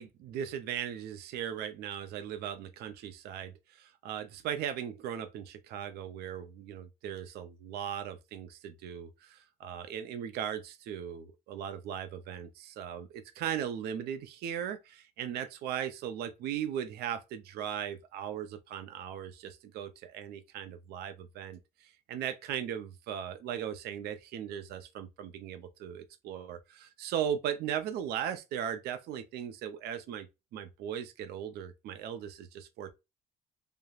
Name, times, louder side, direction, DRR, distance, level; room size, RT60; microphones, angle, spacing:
voice 1, 0.0-32.9, right 9 dB, 70° right, 0.4 m, -38 dB
3.2 x 2.0 x 2.3 m
cardioid pair, 110°, 17 cm